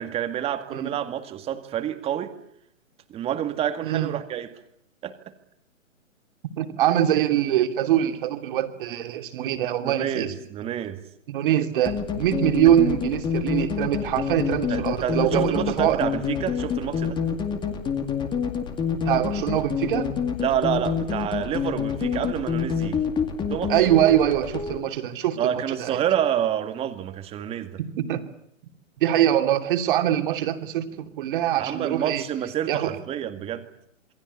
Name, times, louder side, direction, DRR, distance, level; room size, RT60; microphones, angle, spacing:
voice 1, 0.0-2.4 3.1-4.5 5.0-5.2 9.8-11.0 14.7-17.2 20.4-23.0 23.4-23.7 25.4-27.8 31.6-33.7, right 10 dB, 15° right, 9 dB, 2.0 m, -28 dB
voice 2, 3.8-4.1 6.6-10.3 11.3-16.0 19.0-20.1 23.7-26.0 27.8-28.2 29.0-32.2 32.7-33.0, right 11 dB, 40° right, 7 dB, 3.0 m, -23 dB
sound 1, 11.9-24.8, left 6 dB, 10° left, 2.2 m, -27 dB
27.5 x 23.0 x 8.3 m, 0.70 s
hypercardioid pair, 145°, 40 cm